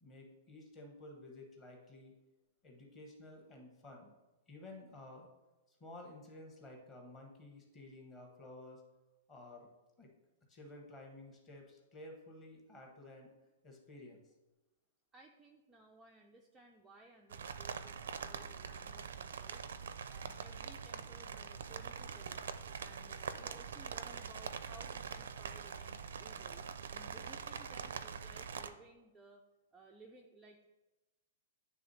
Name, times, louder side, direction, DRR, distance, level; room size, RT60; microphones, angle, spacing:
voice 1, 0.0-2.1 2.6-4.1 4.5-5.3 5.7-8.8 9.3-9.7 10.0-10.1 10.5-13.3 13.6-14.2, left 2 dB, 15° left, 0 dB, 1.0 m, -53 dB
voice 2, 15.1-22.4 22.8-29.4 29.7-30.6, right 2 dB, 5° right, 0 dB, 0.3 m, -59 dB
sound 1, 17.3-28.7, right 6 dB, 85° right, 0.4 m, -44 dB
9.4 x 3.3 x 4.1 m, 1.1 s
hypercardioid pair, 175°, 0 cm